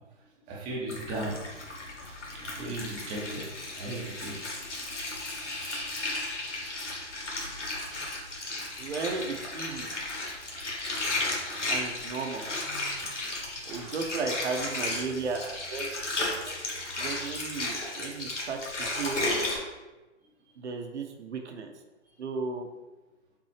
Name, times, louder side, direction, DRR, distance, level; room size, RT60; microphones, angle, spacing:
voice 1, 0.5-1.4 2.0-4.4 5.5-6.2 13.1-14.0, right 2 dB, 10° right, -3 dB, 0.4 m, -38 dB
Water, 0.9-19.6, left 2 dB, 85° left, 1.2 m, -34 dB
voice 2, 8.8-9.9 11.7-12.5 13.7-16.6 17.0-19.2 20.6-21.7 22.2-22.7, right 4 dB, 75° right, 4 dB, 0.7 m, -35 dB
5.8 x 2.0 x 3.2 m, 1.1 s
hypercardioid pair, 130°, 35 cm